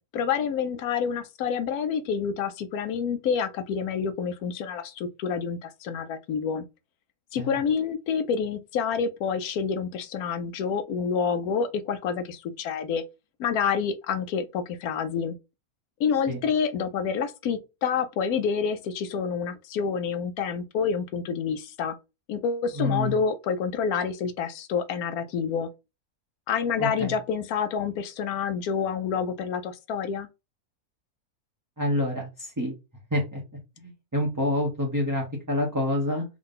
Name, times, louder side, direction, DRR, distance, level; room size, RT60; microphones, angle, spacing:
voice 1, 0.1-6.6 7.3-13.0 13.4-15.4 16.0-22.0 22.3-25.7 26.5-30.3, left 6 dB, 80° left, 1.1 m, -28 dB
voice 2, 22.7-23.1 26.8-27.1 31.8-32.7 33.1-33.4 33.8-36.2, left 1 dB, 15° right, 0.8 m, -27 dB
3.6 x 2.7 x 3.7 m
omnidirectional pair, 1.6 m